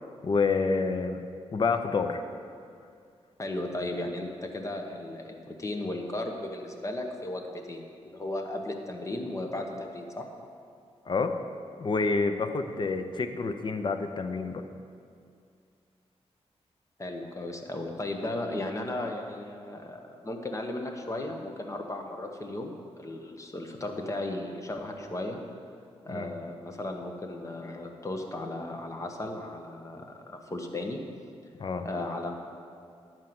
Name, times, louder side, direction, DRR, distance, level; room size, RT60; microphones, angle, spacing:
voice 1, 0.2-1.2 1.5-2.2 11.1-11.3 11.8-14.6 26.1-26.3 31.6-31.9, left 4 dB, 45° left, 7 dB, 0.6 m, -28 dB
voice 2, 3.4-10.3 17.0-25.4 26.0-31.0 31.8-32.3, left 1 dB, 30° left, 3 dB, 1.0 m, -35 dB
10.5 x 4.6 x 7.8 m, 2.3 s
wide cardioid pair, 105°, 11 cm